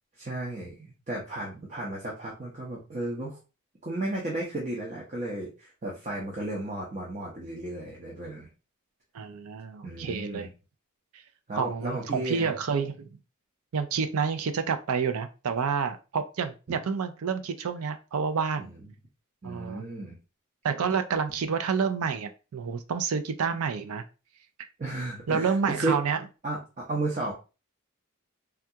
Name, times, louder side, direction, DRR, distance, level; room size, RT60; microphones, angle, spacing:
voice 1, 0.2-3.4 3.8-8.5 9.8-10.5 11.5-12.5 18.6-18.8 19.4-20.2 24.8-26.0 26.4-27.3, right 2 dB, 35° right, -3 dB, 0.7 m, -34 dB
voice 2, 9.1-10.5 11.5-13.1 13.7-18.7 19.4-19.8 20.6-24.0 25.3-26.2, right 6 dB, 75° right, 9 dB, 0.4 m, -29 dB
3.5 x 2.3 x 2.7 m, 0.31 s
head